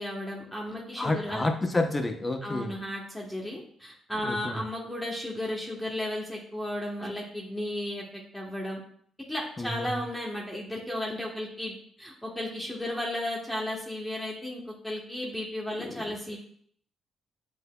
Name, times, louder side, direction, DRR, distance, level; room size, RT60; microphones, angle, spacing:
voice 1, 0.0-1.4 2.4-8.8 9.3-16.4, left 1 dB, 5° left, -3 dB, 1.0 m, -34 dB
voice 2, 1.0-2.7 4.2-4.6 9.6-10.0 15.8-16.1, left 2 dB, 20° left, 4 dB, 0.7 m, -30 dB
7.8 x 2.7 x 2.2 m, 0.62 s
cardioid pair, 90°, 0 cm